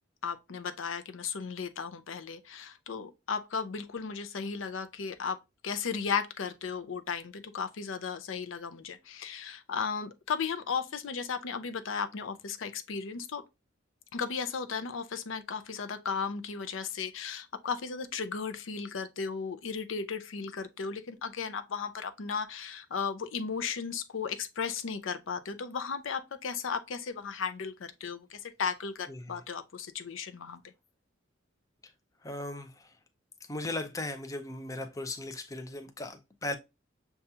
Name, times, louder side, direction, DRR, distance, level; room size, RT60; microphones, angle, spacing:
voice 1, 0.2-5.4 5.6-13.4 14.1-30.7, left 6 dB, 80° left, 0.5 m, -35 dB
voice 2, 29.1-29.4 32.2-32.9 33.5-36.6, left 2 dB, 15° left, 0.5 m, -37 dB
6.7 x 2.3 x 2.7 m
head